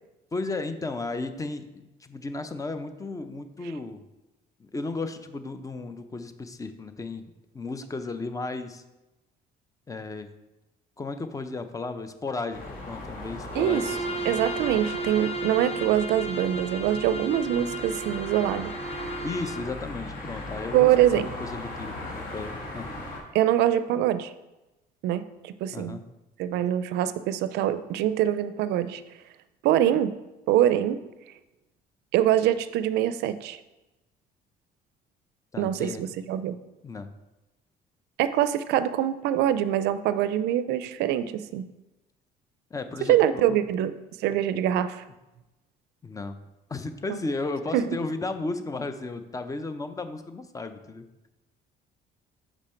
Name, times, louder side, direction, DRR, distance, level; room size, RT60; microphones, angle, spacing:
voice 1, 0.3-4.0 4.6-8.8 9.9-10.3 11.0-14.2 14.6-14.7 19.2-22.9 25.7-26.0 35.5-36.1 36.8-37.1 42.7-43.6 46.0-46.4 46.7-51.1, left 3 dB, 20° left, 9 dB, 0.5 m, -34 dB
sound 1, 12.5-23.2, left 2 dB, 55° left, 2.0 m, -39 dB
Bowed string instrument, 13.5-19.7, right 2 dB, 35° left, 1.2 m, -34 dB
voice 2, 14.3-18.7 20.7-21.3 23.3-24.3 25.0-26.0 26.4-29.0 29.6-30.1 30.5-31.0 32.1-33.6 35.6-36.6 38.2-41.7 43.1-43.9 44.2-45.0 47.1-47.2 47.7-47.9, right 11 dB, 80° right, 13 dB, 0.4 m, -24 dB
6.2 x 5.0 x 4.3 m, 1.0 s
cardioid pair, 110°, 17 cm